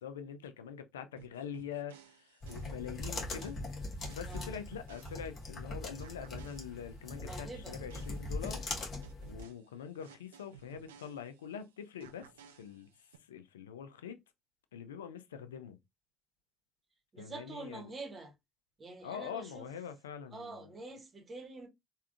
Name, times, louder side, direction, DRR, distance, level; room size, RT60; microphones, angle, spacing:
voice 1, 0.0-3.6 4.1-8.6 9.3-12.3 12.5-12.9 13.2-14.2 14.7-15.8 17.2-17.9 19.0-20.7, left 8 dB, 80° left, 0.3 m, -44 dB
sound 1, 1.2-5.6 6.0-11.6 12.0-13.2, right 9 dB, 80° right, 0.3 m, -57 dB
sound 2, 2.4-9.4, left 2 dB, 45° left, 1.0 m, -41 dB
voice 2, 4.3-4.6 7.2-7.8 17.1-18.3 18.8-19.7 20.3-21.7, right 3 dB, 35° right, 1.0 m, -46 dB
3.4 x 2.3 x 2.3 m
figure-of-eight pair, 50°, 0 cm